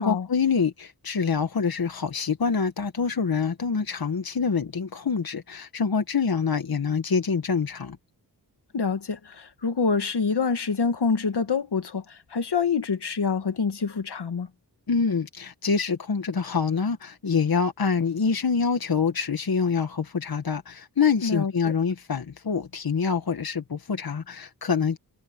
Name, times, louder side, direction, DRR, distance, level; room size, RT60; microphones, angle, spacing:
voice 1, 0.0-8.0 14.9-25.0, left 5 dB, 65° left, 1.6 m, -26 dB
voice 2, 8.7-14.5 21.2-21.5, left 5 dB, 80° left, 2.2 m, -26 dB
wide cardioid pair, 80°, 39 cm